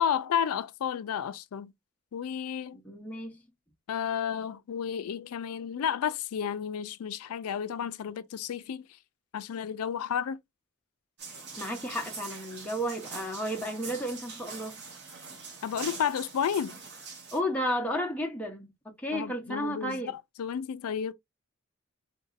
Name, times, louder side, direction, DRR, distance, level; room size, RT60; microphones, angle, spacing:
voice 1, 0.0-1.7 2.1-2.8 3.9-8.9 9.3-10.4 15.6-16.8 19.1-21.1, left 8 dB, 85° left, 0.4 m, -32 dB
voice 2, 2.8-3.4 11.6-14.8 17.3-20.1, equal, 5° left, 0.6 m, -33 dB
sound 1, 11.2-17.4, right 4 dB, 50° right, 1.0 m, -43 dB
3.7 x 2.6 x 2.4 m
head